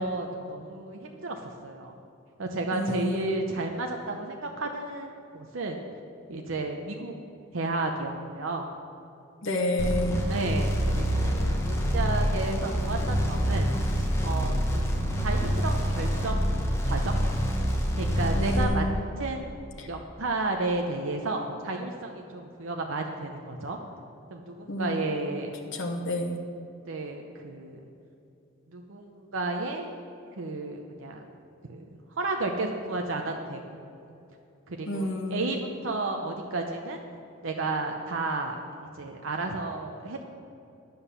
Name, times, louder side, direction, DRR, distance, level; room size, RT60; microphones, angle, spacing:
voice 1, 0.0-2.0 2.4-5.8 6.3-7.1 7.5-8.7 10.3-13.7 14.0-17.2 18.0-18.9 19.2-19.4 19.9-23.8 24.3-25.9 26.9-27.9 28.7-30.0 30.3-31.3 31.6-31.8 32.1-33.6 34.7-37.0 37.4-40.2, right 2 dB, 60° right, 3 dB, 0.7 m, -32 dB
voice 2, 2.7-3.4 9.4-10.3 18.3-19.0 19.8-19.9 24.7-25.1 25.7-26.4 34.9-35.5, left 1 dB, 55° left, 2 dB, 1.0 m, -30 dB
sound 1, 9.8-18.6, equal, 10° left, 1.1 m, -26 dB
9.8 x 8.0 x 6.8 m, 2.7 s
head